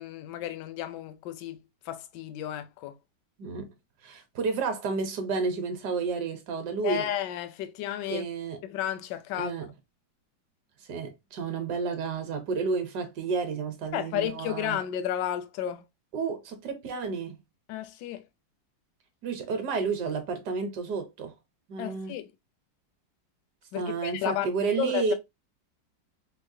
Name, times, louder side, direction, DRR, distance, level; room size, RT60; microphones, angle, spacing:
voice 1, 0.0-3.0 6.8-8.3 8.6-9.5 13.9-15.8 17.7-18.2 21.8-22.3 23.7-25.1, left 11 dB, 75° left, 1.1 m, -32 dB
voice 2, 4.0-7.1 8.1-8.6 9.3-9.7 10.9-14.8 16.1-17.4 19.2-21.3 21.7-22.1 23.8-25.1, right 5 dB, 65° right, 1.2 m, -31 dB
4.6 x 2.1 x 2.6 m
omnidirectional pair, 2.1 m